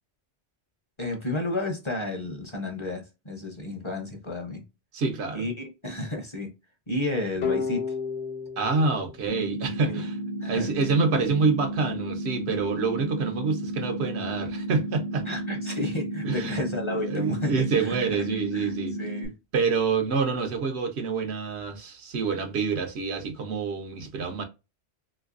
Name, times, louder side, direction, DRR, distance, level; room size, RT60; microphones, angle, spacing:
voice 1, 1.0-4.6 5.3-6.5 6.9-7.8 9.9-10.0 10.4-10.7 15.3-18.0 18.5-18.7 19.0-19.3, left 2 dB, 30° left, 0.7 m, -32 dB
voice 2, 4.9-5.5 8.6-10.2 10.4-15.3 16.2-16.6 16.9-19.0 19.5-24.4, right 4 dB, 85° right, 1.1 m, -27 dB
sound 1, 7.4-10.2, left 5 dB, 75° left, 0.9 m, -32 dB
sound 2, 9.3-19.3, right 1 dB, 55° right, 0.7 m, -33 dB
3.2 x 3.1 x 2.4 m
omnidirectional pair, 1.1 m